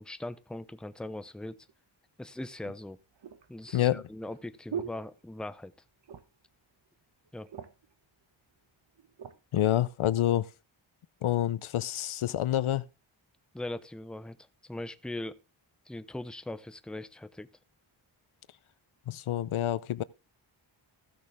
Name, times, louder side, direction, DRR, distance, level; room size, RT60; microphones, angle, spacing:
voice 1, 0.0-1.7 2.2-3.0 3.5-5.7 7.3-7.5 13.5-14.4 14.6-15.4 15.9-17.5, left 1 dB, ahead, 0.6 m, -40 dB
sound 1, 1.7-1.8 2.6-5.7 6.0-6.5 6.9-7.0 7.3-8.0 8.6-9.4 10.0-10.2, right 8 dB, 60° right, 1.1 m, -43 dB
voice 2, 3.7-4.0 9.5-10.5 11.2-12.8 19.1-20.0, left 12 dB, 90° left, 0.7 m, -27 dB
15.5 x 6.5 x 3.5 m
wide cardioid pair, 110°, 48 cm